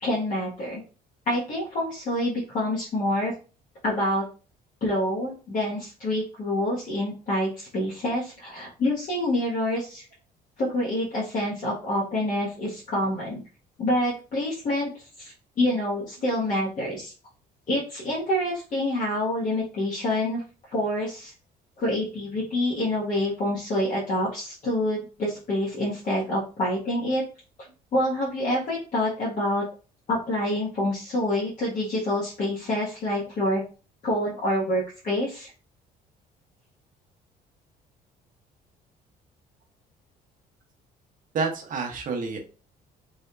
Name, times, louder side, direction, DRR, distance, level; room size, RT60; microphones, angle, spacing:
voice 1, 0.0-0.8 1.3-3.3 3.8-4.2 4.8-10.0 10.6-13.4 13.8-14.9 15.2-17.1 17.7-20.4 20.7-21.3 21.8-27.2 27.9-29.6 30.1-33.6 34.0-35.5, left 1 dB, 50° left, -6 dB, 1.2 m, -27 dB
voice 2, 41.3-42.4, right 4 dB, 50° right, 3 dB, 0.9 m, -28 dB
3.5 x 2.7 x 2.2 m, 0.36 s
cardioid pair, 110°, 17 cm